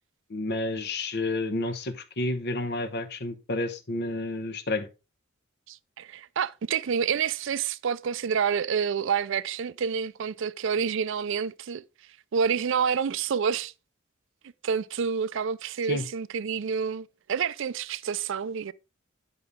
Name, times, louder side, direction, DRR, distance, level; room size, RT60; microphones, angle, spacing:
voice 1, 0.3-4.9 15.9-16.0, left 2 dB, 55° left, 1.0 m, -30 dB
voice 2, 5.7-11.8 12.3-13.7 14.6-18.7, right 6 dB, 65° right, 0.4 m, -28 dB
9.5 x 5.5 x 3.6 m
head